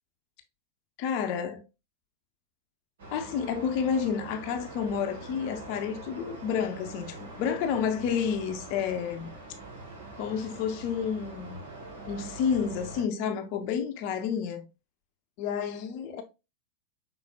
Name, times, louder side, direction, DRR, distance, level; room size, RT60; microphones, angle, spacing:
voice 1, 1.0-1.6 3.1-9.3 10.2-11.6 12.1-14.6 15.4-16.2, left 7 dB, 45° left, 0.6 m, -30 dB
sound 1, 3.0-13.0, right 2 dB, 60° right, 1.4 m, -44 dB
5.7 x 3.6 x 2.3 m
figure-of-eight pair, 90°, 0 cm